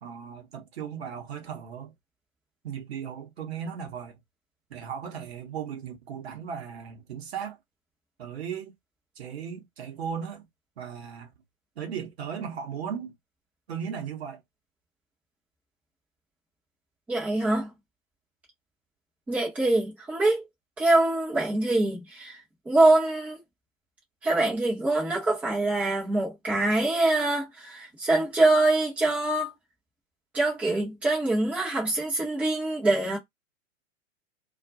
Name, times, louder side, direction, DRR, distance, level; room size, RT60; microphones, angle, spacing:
voice 1, 0.0-1.9 2.6-4.1 4.7-7.6 8.2-8.7 9.2-10.4 10.8-11.3 11.8-13.1 13.7-14.4, right 7 dB, 50° right, 0.8 m, -36 dB
voice 2, 17.1-17.7 19.3-20.5 20.8-22.4 22.7-23.4 24.2-29.5 30.3-33.2, right 2 dB, 5° right, 0.6 m, -24 dB
2.3 x 2.1 x 2.5 m
figure-of-eight pair, 110°, 41 cm